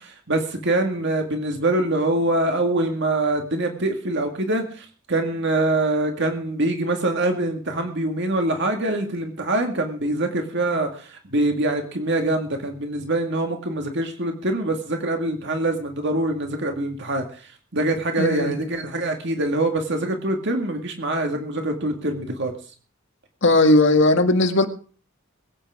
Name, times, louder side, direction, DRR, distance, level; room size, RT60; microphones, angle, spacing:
voice 1, 0.0-22.5, right 2 dB, 60° right, 4 dB, 2.0 m, -24 dB
voice 2, 18.2-18.6 23.4-24.7, left 2 dB, 60° left, 6 dB, 1.8 m, -17 dB
21.5 x 8.8 x 4.9 m, 0.41 s
head